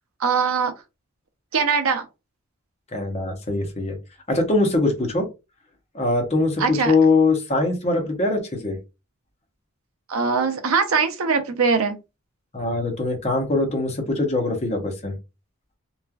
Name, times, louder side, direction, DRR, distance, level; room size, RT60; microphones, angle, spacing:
voice 1, 0.2-0.7 1.5-2.1 6.6-6.9 10.1-12.0, right 5 dB, 70° right, 0.6 m, -21 dB
voice 2, 2.9-4.0 4.3-5.3 5.9-8.8 12.5-15.1, left 2 dB, 30° left, 0.8 m, -22 dB
3.0 x 2.3 x 2.3 m
head